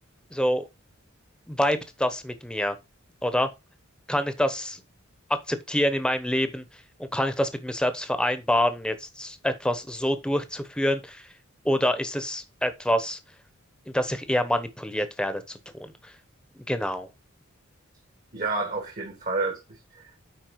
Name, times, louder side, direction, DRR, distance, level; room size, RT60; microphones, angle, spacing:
voice 1, 0.3-0.6 1.5-2.8 3.2-3.5 4.1-4.8 5.3-6.6 7.0-11.3 11.6-13.2 13.9-15.6 16.0-16.1 16.7-17.1, equal, 5° left, 1.0 m, -26 dB
voice 2, 18.3-20.3, right 3 dB, 40° right, 1.6 m, -30 dB
9.1 x 4.3 x 4.7 m
head